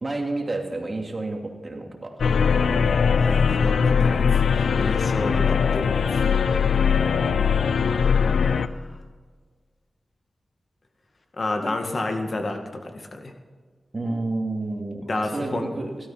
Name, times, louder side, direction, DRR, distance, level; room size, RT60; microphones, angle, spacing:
voice 1, 0.0-2.3 13.9-16.0, right 2 dB, 40° right, 2 dB, 2.7 m, -30 dB
sound 1, 2.2-8.7, left 6 dB, 90° left, 0.5 m, -20 dB
voice 2, 3.1-6.3 8.0-8.9 11.4-13.3 15.1-15.7, left 2 dB, 50° left, 4 dB, 2.1 m, -31 dB
16.5 x 13.0 x 5.8 m, 1.5 s
wide cardioid pair, 75°, 0 cm